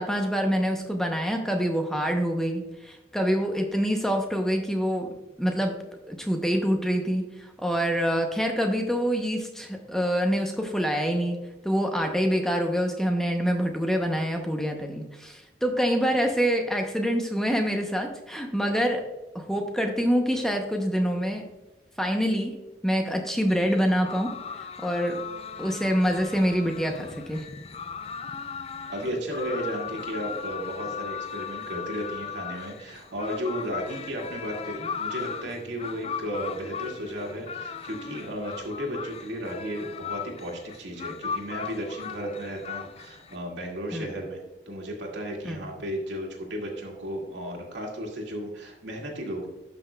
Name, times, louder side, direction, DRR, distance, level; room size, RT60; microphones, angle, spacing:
voice 1, 0.0-5.1 5.4-5.7 6.1-11.4 11.6-19.0 19.3-21.4 22.0-22.6 22.8-24.3 24.6-25.2 25.6-27.4 43.9-44.1 45.4-45.7, equal, 5° left, 3 dB, 0.6 m, -26 dB
sound 1, 23.5-43.4, left 7 dB, 30° left, 0.3 m, -38 dB
voice 2, 28.9-44.4 44.7-49.5, equal, 80° right, 0 dB, 1.9 m, -34 dB
12.0 x 6.0 x 2.2 m, 1.1 s
head